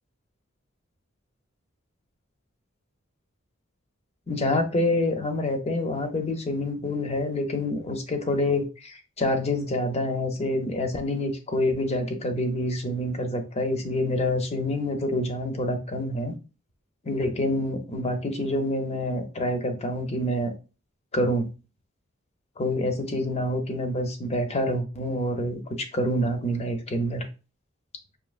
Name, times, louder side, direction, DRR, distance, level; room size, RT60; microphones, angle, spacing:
voice 1, 4.3-16.3 17.0-20.5 21.1-21.5 22.6-27.3, left 1 dB, 30° left, 0.6 m, -27 dB
5.1 x 2.7 x 2.4 m
head